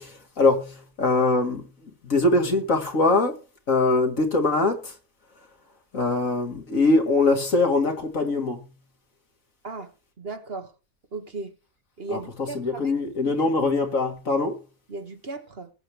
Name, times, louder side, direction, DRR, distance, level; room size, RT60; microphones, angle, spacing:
voice 1, 0.0-1.7 2.0-3.4 3.7-4.9 5.9-8.7 12.1-14.6, left 3 dB, 65° left, 2.5 m, -22 dB
voice 2, 10.2-10.7 11.1-11.5 12.0-12.9 13.2-13.5 14.9-15.7, right 3 dB, 45° right, 1.4 m, -36 dB
20.5 x 7.8 x 3.4 m
omnidirectional pair, 1.5 m